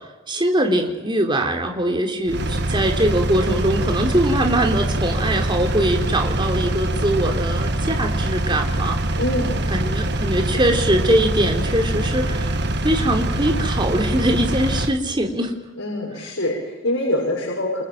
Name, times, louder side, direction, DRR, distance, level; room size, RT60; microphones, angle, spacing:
voice 1, 0.3-9.0 9.7-15.5, right 1 dB, 25° right, 4 dB, 3.8 m, -22 dB
Engine, 2.3-14.9, right 1 dB, 55° right, 1.9 m, -23 dB
voice 2, 9.1-9.7 15.8-17.8, left 1 dB, 85° left, -2 dB, 6.9 m, -24 dB
29.5 x 26.5 x 7.6 m, 1.1 s
head